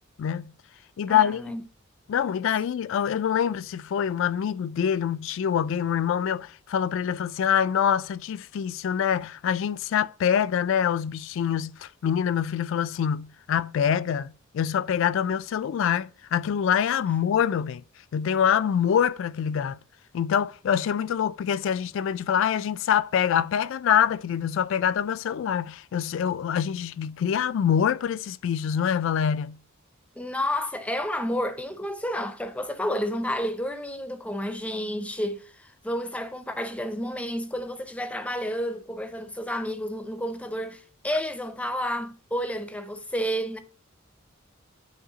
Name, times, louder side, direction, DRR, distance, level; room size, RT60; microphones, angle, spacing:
voice 1, 0.2-0.5 1.0-1.6 2.1-17.8 18.1-19.8 20.1-29.6, left 8 dB, 60° left, 0.3 m, -25 dB
voice 2, 1.1-1.6 30.2-43.6, equal, 5° left, 0.5 m, -30 dB
8.7 x 3.2 x 3.8 m
head